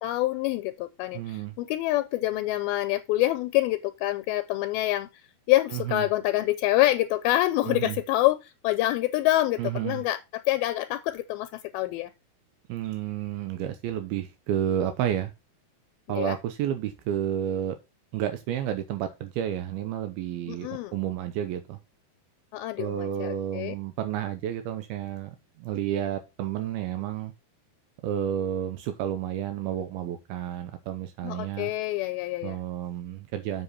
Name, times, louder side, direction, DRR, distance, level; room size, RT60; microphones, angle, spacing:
voice 1, 0.0-5.2 5.5-12.1 16.1-16.4 20.5-21.0 22.5-23.8 31.2-32.6, left 16 dB, 80° left, 2.4 m, -26 dB
voice 2, 1.1-1.5 5.7-6.1 7.7-8.0 9.6-10.0 12.7-15.3 16.1-17.8 18.1-21.8 22.8-27.3 28.0-31.7 32.4-33.6, right 10 dB, 80° right, 2.6 m, -31 dB
7.3 x 7.0 x 4.2 m
omnidirectional pair, 4.6 m